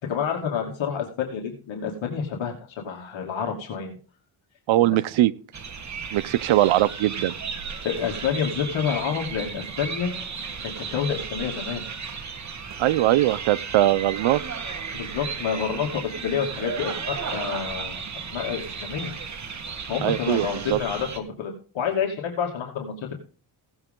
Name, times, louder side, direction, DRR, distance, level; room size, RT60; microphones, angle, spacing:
voice 1, 0.0-2.6 2.8-3.9 4.8-5.0 7.8-10.1 10.6-11.8 14.9-18.0 18.3-19.1 19.9-23.1, left 7 dB, 75° left, 1 dB, 2.6 m, -28 dB
voice 2, 4.7-5.3 6.1-7.3 12.8-14.4 20.0-20.8, right 14 dB, 85° right, 16 dB, 0.8 m, -21 dB
sound 1, 5.5-21.2, right 5 dB, 35° right, 1.5 m, -34 dB
17.0 x 8.0 x 3.8 m, 0.38 s
cardioid pair, 105°, 46 cm